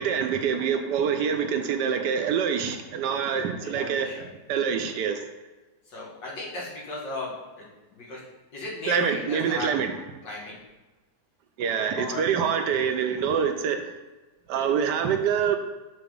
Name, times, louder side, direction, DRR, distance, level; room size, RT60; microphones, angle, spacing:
voice 1, 0.0-4.1 4.5-5.2 8.9-9.9 11.6-13.9 14.5-15.6, right 7 dB, 75° right, 6 dB, 1.1 m, -25 dB
voice 2, 3.6-4.3 5.9-8.2 8.5-9.7 10.2-10.6 11.9-12.2, left 2 dB, 75° left, -5 dB, 2.3 m, -36 dB
5.7 x 3.9 x 5.2 m, 1.2 s
omnidirectional pair, 1.9 m